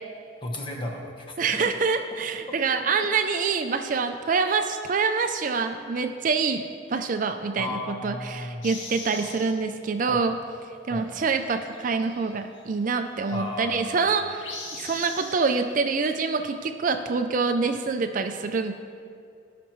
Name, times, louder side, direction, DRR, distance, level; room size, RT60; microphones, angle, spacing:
voice 1, 0.4-1.6 2.7-2.8 7.5-8.7 9.1-9.4 10.1-10.4 10.9-11.3 13.3-14.2 14.7-14.9, left 1 dB, 25° left, 0 dB, 1.1 m, -35 dB
voice 2, 1.4-10.4 10.9-14.2 14.7-18.7, right 4 dB, 40° right, 7 dB, 0.4 m, -26 dB
sound 1, 8.6-9.7 11.2-12.6 14.4-15.4, left 3 dB, 70° left, 1.6 m, -39 dB
17.5 x 6.0 x 3.1 m, 2.4 s
head